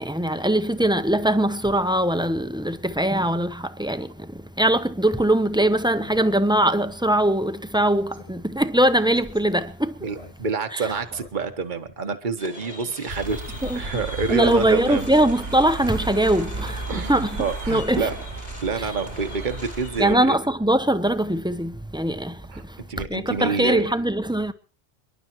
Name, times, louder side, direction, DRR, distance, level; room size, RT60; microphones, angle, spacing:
voice 1, 0.0-10.1 10.7-10.9 13.6-14.0 14.3-18.1 18.8-18.9 20.0-22.8 23.1-24.5, right 1 dB, 5° right, 0.8 m, -22 dB
Speech synthesizer, 5.0-5.2 5.6-5.7 6.0-6.3 6.6-6.7 7.2-7.4 7.7-7.8 8.1-8.4 9.1-9.4 10.1-10.7 11.1-11.7 12.0-12.2 12.8-12.9 13.6-14.1 14.4-14.9, left 4 dB, 80° left, 3.7 m, -45 dB
voice 2, 10.0-15.1 16.9-18.1 18.6-20.3 22.5-22.6 22.9-23.9, right 5 dB, 50° right, 1.4 m, -28 dB
sound 1, 12.4-20.0, left 2 dB, 35° left, 1.9 m, -43 dB
sound 2, 13.1-20.1, right 3 dB, 75° right, 2.7 m, -34 dB
28.5 x 11.0 x 3.1 m
omnidirectional pair, 1.0 m